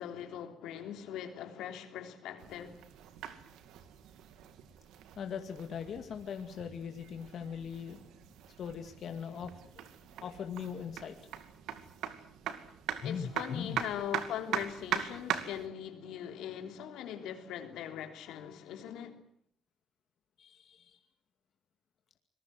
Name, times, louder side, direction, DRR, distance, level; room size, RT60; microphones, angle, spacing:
voice 1, 0.0-2.8 13.0-19.2, left 9 dB, 90° left, 3.3 m, -41 dB
sound 1, 2.4-15.7, right 10 dB, 90° right, 2.4 m, -41 dB
voice 2, 5.2-8.1 8.6-9.9 10.2-11.1 13.0-13.8 20.4-21.0, left 7 dB, 65° left, 2.3 m, -40 dB
26.0 x 20.5 x 7.8 m
cardioid pair, 90°, 0 cm